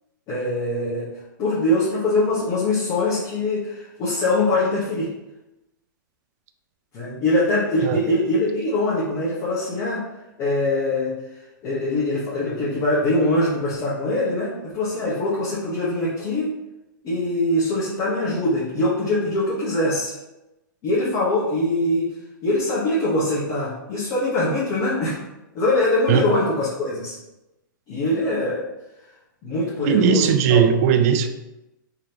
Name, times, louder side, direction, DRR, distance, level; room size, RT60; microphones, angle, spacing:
voice 1, 0.3-1.1 1.4-5.1 6.9-10.0 10.4-16.5 17.0-20.1 20.8-22.1 22.4-25.2 25.5-27.2 27.9-28.7 29.4-30.6, left 1 dB, 35° left, -8 dB, 1.2 m, -23 dB
voice 2, 29.8-31.3, right 7 dB, 45° right, 8 dB, 0.4 m, -18 dB
3.7 x 3.2 x 2.9 m, 0.96 s
hypercardioid pair, 125°, 11 cm